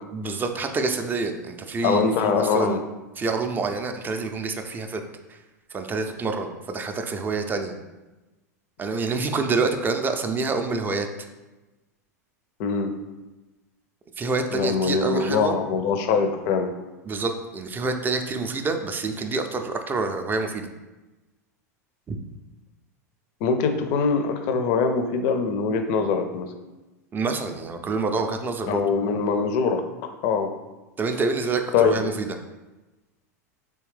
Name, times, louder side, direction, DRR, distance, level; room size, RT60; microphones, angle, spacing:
voice 1, 0.1-2.8 3.2-5.0 5.3-5.4 5.7-7.7 8.8-11.1 14.2-15.6 17.1-20.7 22.1-22.2 27.1-28.8 31.0-32.4, right 3 dB, 20° right, 6 dB, 0.4 m, -27 dB
voice 2, 1.8-2.8 12.6-12.9 14.5-16.7 23.4-26.5 28.7-29.8 30.2-30.5 31.7-32.0, left 5 dB, 50° left, 7 dB, 0.5 m, -23 dB
3.4 x 3.1 x 3.2 m, 1.1 s
hypercardioid pair, 95°, 9 cm